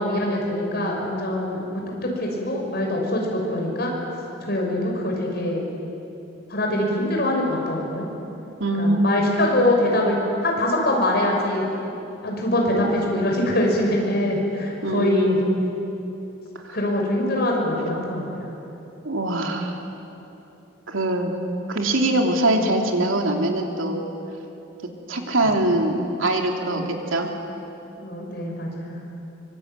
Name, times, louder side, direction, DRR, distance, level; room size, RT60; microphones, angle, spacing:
voice 1, 0.0-3.9 4.4-5.7 6.5-8.1 8.8-11.6 12.2-15.4 16.7-18.4 26.6-26.9 28.0-29.0, left 1 dB, 50° left, 0 dB, 6.3 m, -23 dB
voice 2, 8.6-9.3 14.8-15.7 16.6-16.8 19.0-19.8 20.9-21.3 21.7-24.0 25.1-26.8 27.1-27.3, right 1 dB, 80° right, 2 dB, 3.0 m, -23 dB
24.5 x 24.5 x 9.4 m, 3.0 s
head